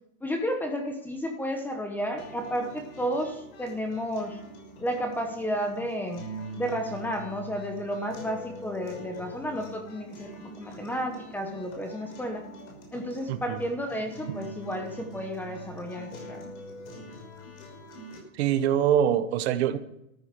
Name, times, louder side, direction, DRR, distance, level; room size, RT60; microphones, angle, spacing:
voice 1, 0.2-4.4 4.8-6.3 6.5-12.4 12.9-16.4, equal, 5° left, 1.0 m, -32 dB
sound 1, 2.2-18.2, right 1 dB, 55° left, 6.1 m, -44 dB
voice 2, 13.3-13.6 18.3-19.8, right 9 dB, 50° right, 1.1 m, -24 dB
14.0 x 11.0 x 6.7 m
supercardioid pair, 170°, 41 cm